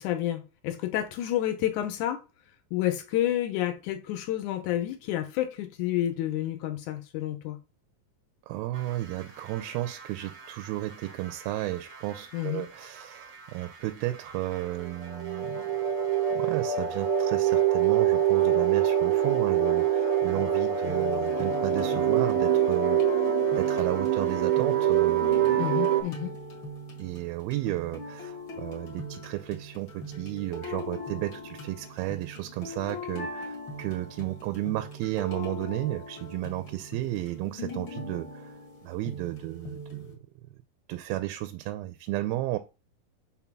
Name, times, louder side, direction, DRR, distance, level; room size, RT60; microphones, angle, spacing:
voice 1, 0.0-2.2 2.7-7.6 12.3-12.6 20.3-20.4 25.6-26.3, left 13 dB, 75° left, 1.9 m, -29 dB
voice 2, 8.5-15.7 16.3-23.3 23.6-25.6 27.0-38.5 38.8-40.1 40.9-42.6, right 16 dB, 90° right, 2.4 m, -33 dB
sound 1, 8.7-26.0, right 9 dB, 60° right, 1.4 m, -26 dB
sound 2, 20.8-40.1, left 1 dB, 45° left, 1.7 m, -41 dB
5.7 x 3.8 x 5.9 m
omnidirectional pair, 4.2 m